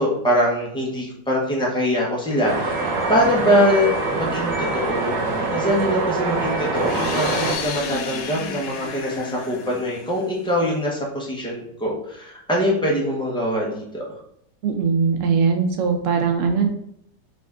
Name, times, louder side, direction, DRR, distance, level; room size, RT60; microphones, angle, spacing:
voice 1, 0.0-2.8 3.1-3.9 4.2-14.0, equal, 5° left, -4 dB, 0.5 m, -23 dB
sound 1, 2.4-7.5, right 3 dB, 75° right, 1.5 m, -24 dB
sound 2, 6.7-10.5, left 6 dB, 80° left, 1.3 m, -32 dB
voice 2, 14.6-16.7, right 5 dB, 60° right, 4 dB, 0.9 m, -20 dB
5.0 x 2.6 x 3.5 m, 0.72 s
omnidirectional pair, 1.9 m